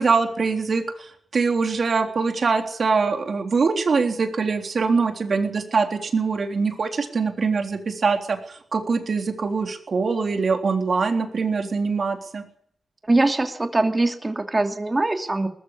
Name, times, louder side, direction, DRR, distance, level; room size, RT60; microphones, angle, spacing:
voice 1, 0.0-12.4, right 4 dB, 60° right, 5 dB, 3.7 m, -23 dB
voice 2, 13.0-15.5, right 2 dB, 25° right, 6 dB, 2.8 m, -22 dB
20.0 x 14.5 x 9.9 m, 0.66 s
wide cardioid pair, 80°, 0 cm